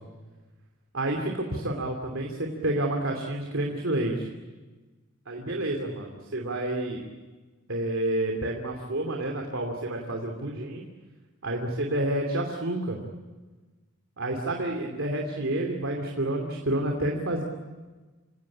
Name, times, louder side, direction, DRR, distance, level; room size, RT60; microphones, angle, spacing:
voice 1, 0.9-4.3 5.3-7.0 7.7-10.8 11.4-13.0 14.2-17.4, right 1 dB, 70° right, 1 dB, 2.8 m, -29 dB
27.5 x 17.5 x 10.0 m, 1.3 s
head